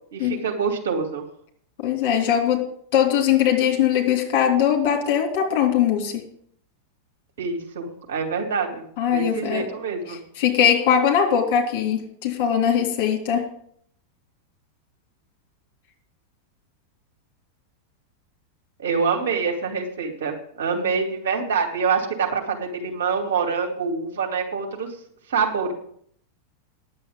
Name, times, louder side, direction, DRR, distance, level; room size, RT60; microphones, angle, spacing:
voice 1, 0.1-1.2 7.4-8.8 9.1-10.2 18.8-24.9 25.3-25.7, right 5 dB, 60° right, 1 dB, 2.7 m, -25 dB
voice 2, 1.8-2.6 2.9-6.2 9.0-9.7 10.1-13.4, left 9 dB, 45° left, 2 dB, 3.1 m, -21 dB
10.5 x 7.5 x 8.6 m, 0.64 s
figure-of-eight pair, 90°, 0 cm